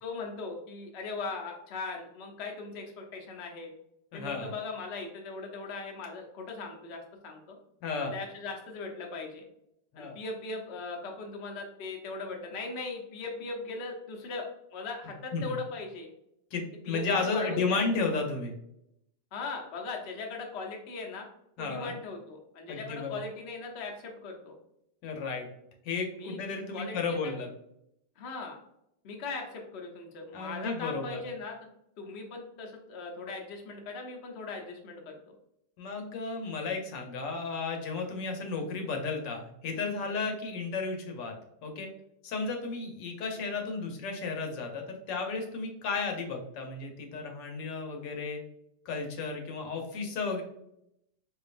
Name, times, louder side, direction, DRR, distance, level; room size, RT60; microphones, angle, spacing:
voice 1, 0.0-3.7 4.1-7.6 7.9-9.4 10.0-14.4 14.7-16.1 16.9-17.8 19.3-21.3 21.6-24.6 26.2-26.4 26.7-27.4 28.2-28.6 29.0-31.6 32.0-35.2, left 3 dB, 55° left, 2 dB, 0.8 m, -39 dB
voice 2, 4.1-4.5 7.8-8.1 9.9-10.2 15.3-15.5 16.5-18.5 21.6-21.9 22.7-23.2 25.0-25.5 25.8-27.5 30.3-31.2 35.8-41.3 41.6-41.9 42.2-48.4 48.8-50.4, left 4 dB, 80° left, 2 dB, 1.4 m, -33 dB
4.3 x 2.8 x 2.4 m, 0.79 s
omnidirectional pair, 1.9 m